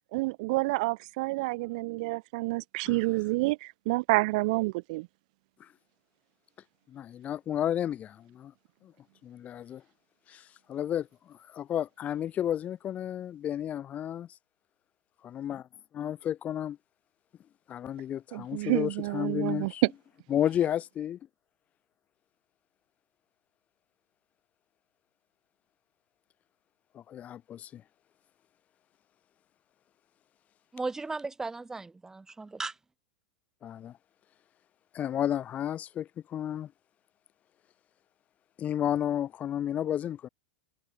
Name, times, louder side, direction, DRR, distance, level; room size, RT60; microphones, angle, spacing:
voice 1, 0.1-5.1 18.3-19.7, right 23 dB, 60° right, 1.8 m, -29 dB
voice 2, 6.9-8.5 8.8-8.9 9.2-9.8 10.3-10.4 10.7-14.3 15.2-15.7 15.9-16.8 17.7-19.8 20.3-21.2 26.9-27.8 33.6-33.9 34.9-36.7 38.6-40.3, left 10 dB, 30° left, 3.7 m, -32 dB
voice 3, 30.7-32.7, right 3 dB, 10° right, 7.5 m, -36 dB
hypercardioid pair, 100°, 5 cm